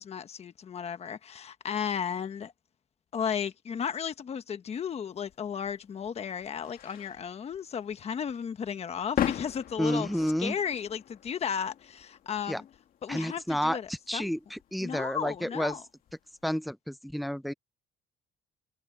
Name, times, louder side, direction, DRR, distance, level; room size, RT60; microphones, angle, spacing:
voice 1, 0.0-2.5 3.1-10.1 10.4-12.6 13.0-13.9 14.1-14.3 14.8-15.8, left 7 dB, 40° left, 1.2 m, -34 dB
sound 1, 5.3-16.6, left 10 dB, 55° left, 1.5 m, -40 dB
voice 2, 9.8-10.6 12.5-12.6 13.1-15.8 16.4-17.5, equal, ahead, 0.6 m, -30 dB
cardioid pair, 110°, 17 cm